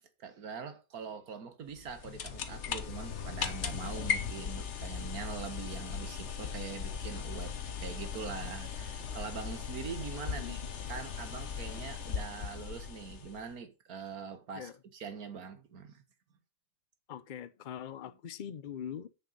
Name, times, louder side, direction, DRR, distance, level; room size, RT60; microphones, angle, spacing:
voice 1, 0.2-16.0, right 5 dB, 60° right, 1.8 m, -43 dB
sound 1, 1.7-13.5, left 7 dB, 50° left, 1.2 m, -38 dB
voice 2, 10.2-10.6 14.6-14.7 17.1-19.1, left 9 dB, 80° left, 0.4 m, -42 dB
8.0 x 6.9 x 5.4 m
omnidirectional pair, 1.8 m